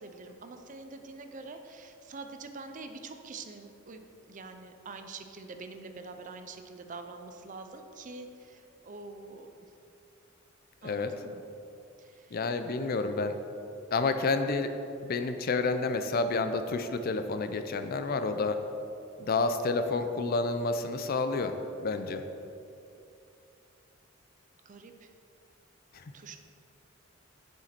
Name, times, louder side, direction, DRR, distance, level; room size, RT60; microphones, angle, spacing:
voice 1, 0.0-9.5 10.8-11.4 12.0-12.4 19.8-20.1 24.7-25.1 26.1-26.4, right 3 dB, 40° right, 7 dB, 0.5 m, -45 dB
voice 2, 12.3-13.3 13.9-14.7 15.0-18.6 19.2-22.2 25.9-26.0, left 3 dB, 45° left, 8 dB, 0.4 m, -29 dB
7.2 x 6.5 x 4.3 m, 2.7 s
head